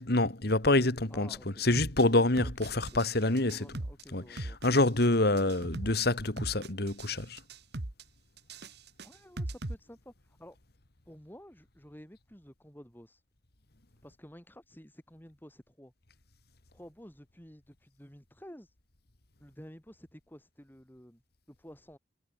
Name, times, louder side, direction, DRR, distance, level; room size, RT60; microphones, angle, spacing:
voice 1, 0.0-3.7 4.1-7.4, left 2 dB, 55° left, 2.1 m, -27 dB
voice 2, 1.1-1.7 2.4-3.1 3.5-4.6 5.3-5.4 9.0-10.6 11.1-13.2 14.0-15.9 16.7-18.7 19.4-21.2 21.5-22.0, equal, 10° left, 4.4 m, -52 dB
sound 1, 1.7-2.0 2.4-3.1 3.4-4.0 4.4-5.1 5.4-6.0 6.4-7.1 7.4-8.0 8.4-9.7, right 1 dB, 60° right, 1.6 m, -38 dB
head